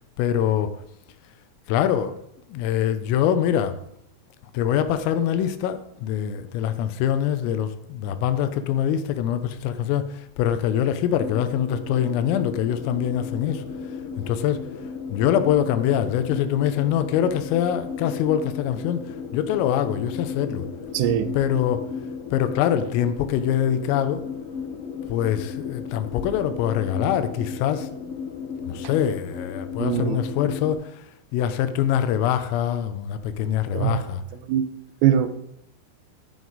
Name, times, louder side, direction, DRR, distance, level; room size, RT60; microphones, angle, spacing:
voice 1, 0.2-0.7 1.7-2.2 2.5-3.8 4.5-13.9 14.2-14.6 15.1-20.6 21.3-21.9 22.3-24.3 25.1-27.9 28.7-34.2, left 10 dB, 85° left, 3.4 m, -24 dB
sound 1, 11.1-30.7, left 6 dB, 65° left, 3.6 m, -35 dB
voice 2, 20.9-21.3 29.8-30.2 33.7-34.1 34.5-34.7 35.0-35.3, right 10 dB, 80° right, 3.3 m, -21 dB
11.5 x 11.0 x 4.0 m
omnidirectional pair, 5.9 m